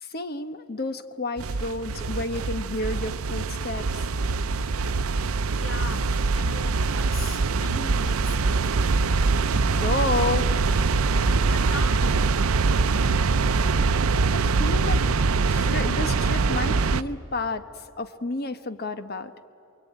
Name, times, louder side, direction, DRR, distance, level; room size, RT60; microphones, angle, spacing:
voice 1, 0.0-4.1 9.5-10.6 14.3-15.0 15.5-19.3, left 2 dB, 45° left, 1.0 m, -31 dB
sound 1, 1.4-17.0, right 4 dB, 85° right, 0.6 m, -23 dB
voice 2, 5.5-8.7 11.2-12.7 18.9-19.1, left 3 dB, 65° left, 1.4 m, -40 dB
28.0 x 22.0 x 9.3 m
head